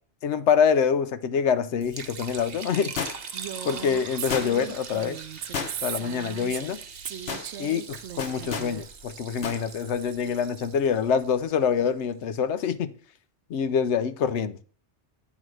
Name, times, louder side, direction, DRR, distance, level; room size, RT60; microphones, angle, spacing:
voice 1, 0.2-3.1 3.6-5.2 5.8-6.8 7.6-12.9 13.5-14.6, left 7 dB, 85° left, 0.9 m, -25 dB
Liquid, 1.8-12.0, right 6 dB, 60° right, 1.0 m, -42 dB
sound 1, 3.0-3.5 4.3-4.8 5.5-6.1 6.4-6.6 7.0-7.5 8.2-8.7 9.4-9.6 9.9-10.0, left 6 dB, 65° left, 1.1 m, -33 dB
Female speech woman speaking, 3.3-6.8 7.1-8.8, right 11 dB, 80° right, 0.9 m, -37 dB
9.1 x 3.9 x 6.3 m
omnidirectional pair, 1.2 m